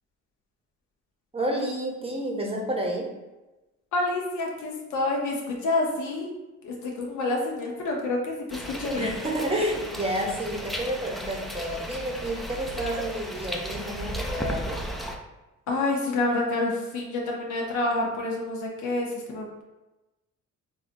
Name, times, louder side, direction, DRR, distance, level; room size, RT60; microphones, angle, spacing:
voice 1, 1.3-3.1 8.9-14.8, right 1 dB, 20° right, -1 dB, 0.8 m, -30 dB
voice 2, 3.9-6.3 6.6-9.1 15.7-19.6, left 2 dB, 75° left, -1 dB, 0.9 m, -28 dB
sound 1, 8.5-15.2, equal, ahead, 0.3 m, -35 dB
3.9 x 2.6 x 2.6 m, 1.1 s
cardioid pair, 90°, 30 cm